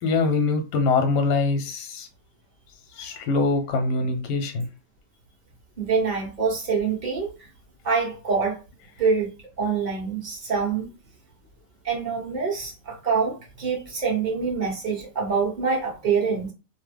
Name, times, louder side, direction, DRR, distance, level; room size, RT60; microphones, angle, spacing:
voice 1, 0.0-2.1 2.9-4.7, left 3 dB, 80° left, 1.2 m, -23 dB
voice 2, 5.8-7.5 7.8-8.6 9.0-9.3 9.6-10.9 11.8-16.5, right 5 dB, 30° right, 1.0 m, -25 dB
3.0 x 2.2 x 3.3 m
omnidirectional pair, 1.8 m